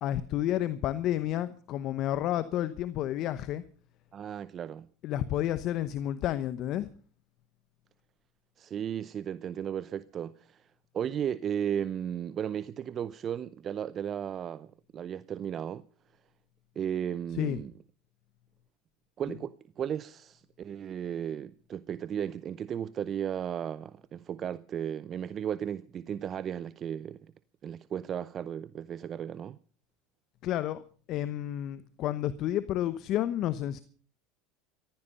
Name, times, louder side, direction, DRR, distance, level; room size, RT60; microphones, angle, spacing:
voice 1, 0.0-3.6 5.0-6.9 17.3-17.6 19.2-19.4 30.4-30.8 31.1-33.8, left 12 dB, 50° left, 0.9 m, -31 dB
voice 2, 4.1-4.9 8.6-10.7 10.9-15.8 16.8-17.7 19.2-27.3 27.6-29.6, right 9 dB, 40° right, 0.6 m, -35 dB
15.5 x 13.5 x 5.5 m
hypercardioid pair, 90°, 0 cm